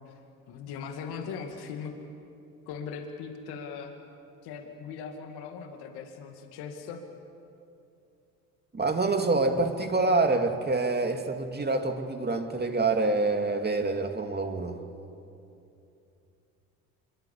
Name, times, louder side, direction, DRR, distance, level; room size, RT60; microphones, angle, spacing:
voice 1, 0.5-1.9 2.6-3.9 4.4-7.0, left 6 dB, 70° left, 2.3 m, -39 dB
voice 2, 8.7-14.8, right 3 dB, 25° right, 2.7 m, -26 dB
25.5 x 23.5 x 7.3 m
hypercardioid pair, 65°, 40 cm